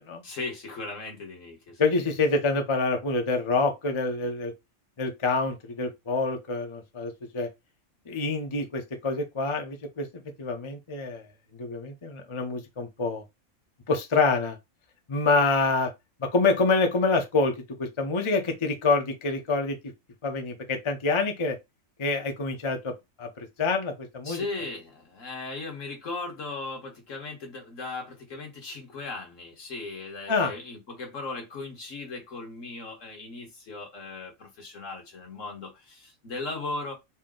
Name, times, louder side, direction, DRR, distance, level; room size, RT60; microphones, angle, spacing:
voice 1, 0.2-1.8 24.2-37.0, left 3 dB, 70° left, 1.7 m, -37 dB
voice 2, 1.8-4.5 5.0-7.5 8.1-10.1 10.4-11.2 11.6-13.2 13.9-14.6 15.1-15.9 16.2-19.8 20.2-21.6 22.0-24.4 30.3-30.5, left 3 dB, 30° left, 0.6 m, -26 dB
4.3 x 2.1 x 3.7 m
omnidirectional pair, 1.4 m